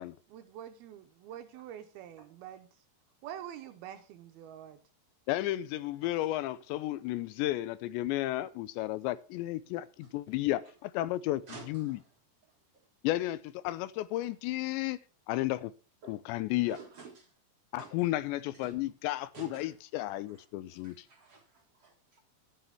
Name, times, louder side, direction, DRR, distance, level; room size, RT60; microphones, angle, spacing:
voice 1, 0.3-2.7 3.2-4.8, right 10 dB, 75° right, 2.5 m, -46 dB
voice 2, 5.3-12.0 13.0-15.0 15.3-15.7 16.0-16.8 17.7-21.1, left 16 dB, 90° left, 3.0 m, -33 dB
voice 3, 11.5-12.0 16.0-16.2 16.7-17.1 17.8-18.0 18.6-18.7 19.3-19.7 20.7-22.2, right 5 dB, 50° right, 1.9 m, -50 dB
11.0 x 8.3 x 5.6 m
omnidirectional pair, 5.0 m